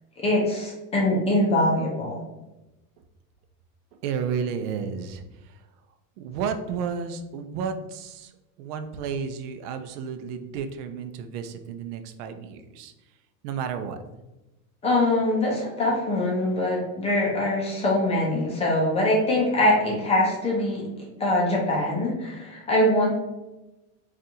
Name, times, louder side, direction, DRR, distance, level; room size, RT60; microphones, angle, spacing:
voice 1, 0.2-2.2 14.8-20.8 21.2-23.1, left 1 dB, 15° left, -3 dB, 0.4 m, -23 dB
voice 2, 4.0-5.6 6.2-8.3 8.6-12.9 13.4-14.0, right 6 dB, 85° right, 8 dB, 0.6 m, -32 dB
4.0 x 2.5 x 2.7 m, 1.0 s
supercardioid pair, 155°, 45 cm